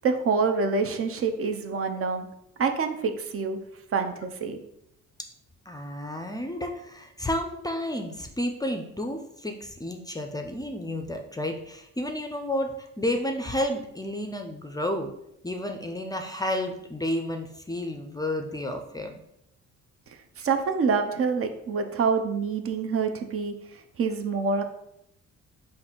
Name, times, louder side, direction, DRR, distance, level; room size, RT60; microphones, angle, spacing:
voice 1, 0.0-2.3 2.6-3.6 3.9-4.6 20.4-24.6, right 5 dB, 50° right, 6 dB, 0.6 m, -26 dB
voice 2, 5.7-15.1 15.4-19.2, left 1 dB, 15° left, 4 dB, 0.4 m, -31 dB
4.0 x 2.6 x 4.3 m, 0.78 s
cardioid pair, 90°, 30 cm